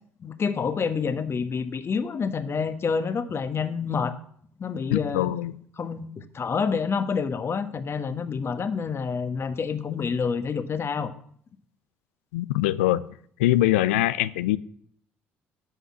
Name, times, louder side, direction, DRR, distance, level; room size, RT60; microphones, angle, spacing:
voice 1, 0.2-4.2 4.6-5.3 5.8-11.1, left 5 dB, 40° left, 10 dB, 1.3 m, -28 dB
voice 2, 4.9-5.5 12.3-13.0 13.4-14.6, left 14 dB, 85° left, 16 dB, 0.4 m, -23 dB
11.5 x 5.7 x 8.6 m, 0.62 s
hypercardioid pair, 60°, 6 cm